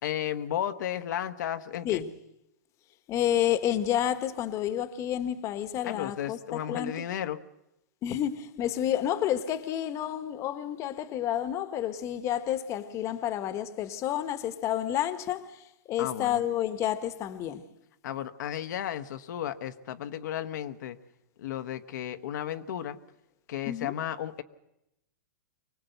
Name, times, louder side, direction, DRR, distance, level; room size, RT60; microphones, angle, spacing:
voice 1, 0.0-2.0 5.8-7.4 16.0-16.4 18.0-21.0 21.4-23.0 23.5-24.4, left 10 dB, 70° left, 1.2 m, -34 dB
voice 2, 3.1-7.0 8.0-17.7 23.7-24.0, left 11 dB, 30° left, 1.3 m, -30 dB
24.0 x 18.5 x 8.0 m
hypercardioid pair, 140°, 10 cm